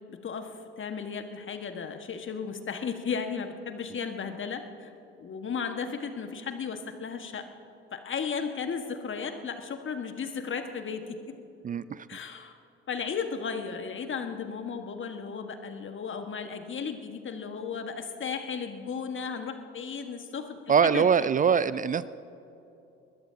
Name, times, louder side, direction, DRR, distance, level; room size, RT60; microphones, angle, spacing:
voice 1, 0.1-4.9 5.2-7.4 7.9-11.3 12.1-12.6 12.9-21.3, left 6 dB, 35° left, 7 dB, 1.6 m, -35 dB
voice 2, 11.6-12.1 20.7-22.1, right 7 dB, 25° right, 17 dB, 0.4 m, -23 dB
24.0 x 21.0 x 2.8 m, 2.8 s
figure-of-eight pair, 50°, 32 cm